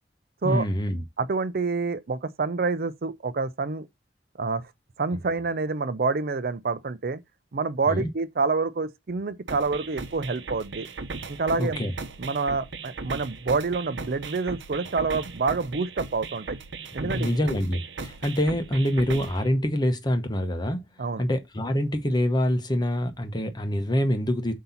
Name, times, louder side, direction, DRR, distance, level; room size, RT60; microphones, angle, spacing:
voice 1, 0.4-1.0 7.9-8.1 11.6-11.9 17.0-20.8 21.2-24.5, equal, 25° left, 0.8 m, -25 dB
voice 2, 1.2-3.9 4.4-4.7 5.0-7.2 7.5-10.9 11.3-11.8 12.2-16.6 16.9-17.4 21.0-21.2, right 4 dB, 55° right, 0.5 m, -27 dB
sound 1, 9.5-19.5, right 4 dB, 85° right, 0.8 m, -37 dB
7.7 x 2.8 x 5.6 m
head